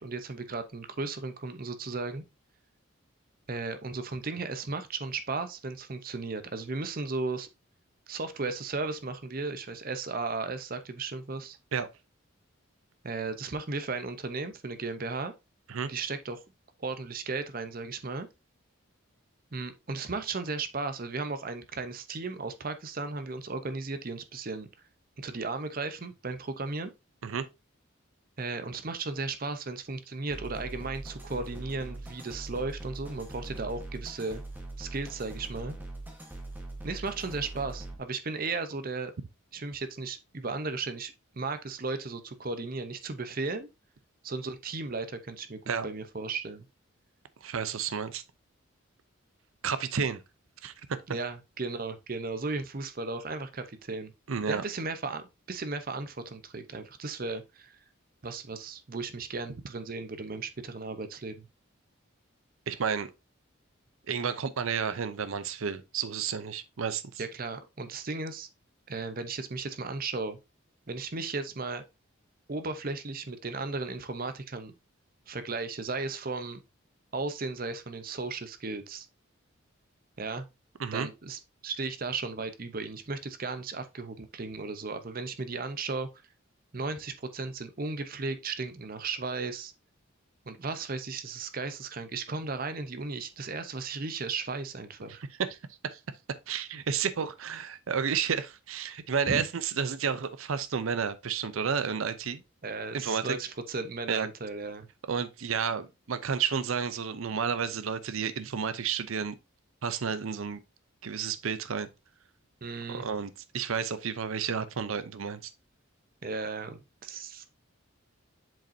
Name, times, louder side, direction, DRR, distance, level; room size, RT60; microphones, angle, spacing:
voice 1, 0.0-2.2 3.5-7.5 8.1-11.6 13.0-15.3 15.9-16.4 16.8-18.3 19.5-24.7 25.2-26.9 28.4-34.4 34.8-35.8 36.8-39.1 39.5-43.7 44.2-46.7 51.1-54.1 54.5-57.8 58.2-61.5 67.2-68.5 68.9-70.4 70.9-71.8 72.5-74.7 75.3-76.6 77.1-79.1 80.2-80.5 80.9-86.1 86.7-89.7 90.5-95.2 99.3-99.5 102.6-104.9 112.6-113.0 116.2-117.5, right 3 dB, 45° right, 0.7 m, -35 dB
sound 1, 30.3-37.9, right 2 dB, 10° right, 1.2 m, -42 dB
voice 2, 47.4-48.2 49.6-50.2 50.6-51.0 54.3-54.6 62.7-63.1 64.1-67.2 80.8-81.1 95.5-95.6 95.8-96.0 96.5-102.4 102.9-103.3 104.1-104.3 105.1-109.4 109.8-110.6 111.0-111.9 112.9-115.5, right 6 dB, 80° right, 0.6 m, -31 dB
7.3 x 5.2 x 2.7 m
head